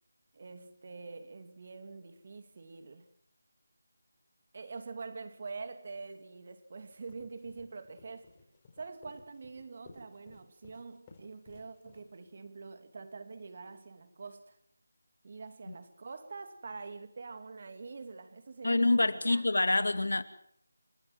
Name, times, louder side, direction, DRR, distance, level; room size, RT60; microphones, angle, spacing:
voice 1, 0.3-3.1 4.5-8.3 8.8-14.6 15.2-19.5, right 4 dB, 45° right, 2.6 m, -45 dB
sound 1, 6.9-12.3, left 3 dB, 20° left, 5.5 m, -58 dB
voice 2, 18.6-20.2, left 2 dB, 80° left, 2.3 m, -26 dB
29.5 x 12.5 x 7.7 m
figure-of-eight pair, 170°, 0 cm